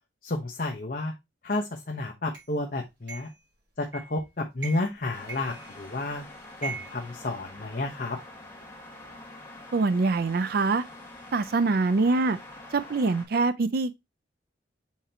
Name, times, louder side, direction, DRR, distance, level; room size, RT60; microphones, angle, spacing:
voice 1, 0.2-1.1 1.4-3.3 3.8-6.2 6.6-8.2, left 2 dB, 50° left, 1.0 m, -31 dB
sound 1, 2.3-2.5 3.1-3.4 3.9-4.2 4.6-5.0 5.3-6.1 6.6-7.9, right 5 dB, 70° right, 4.5 m, -41 dB
sound 2, 5.1-13.2, left 2 dB, 10° left, 2.4 m, -46 dB
voice 2, 9.7-10.8 11.3-12.4 12.7-13.9, right 3 dB, 55° right, 0.5 m, -24 dB
7.4 x 4.4 x 2.9 m
head